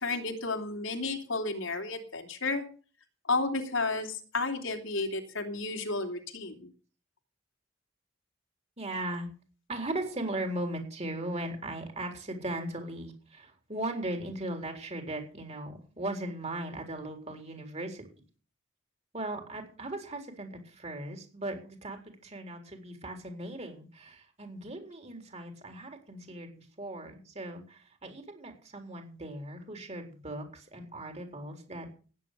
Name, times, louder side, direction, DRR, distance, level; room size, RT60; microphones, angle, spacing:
voice 1, 0.0-2.6 3.3-6.7, left 3 dB, 80° left, 4 dB, 3.1 m, -32 dB
voice 2, 8.8-9.3 9.7-18.1 19.1-31.9, right 1 dB, 35° right, 4 dB, 4.0 m, -38 dB
16.0 x 9.6 x 6.9 m, 0.39 s
head